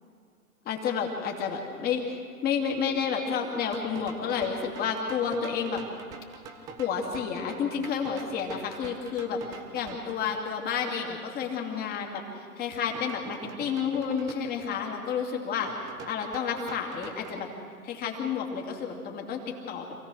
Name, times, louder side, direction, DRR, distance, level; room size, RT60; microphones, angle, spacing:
voice 1, 0.6-5.8 6.8-17.5 17.8-19.4 19.7-19.9, left 6 dB, 20° left, 2 dB, 2.5 m, -30 dB
sound 1, 3.7-10.2 12.9-14.3 15.7-17.4, right 5 dB, 10° right, 0.5 m, -45 dB
27.0 x 16.5 x 6.3 m, 2.3 s
hypercardioid pair, 130°, 47 cm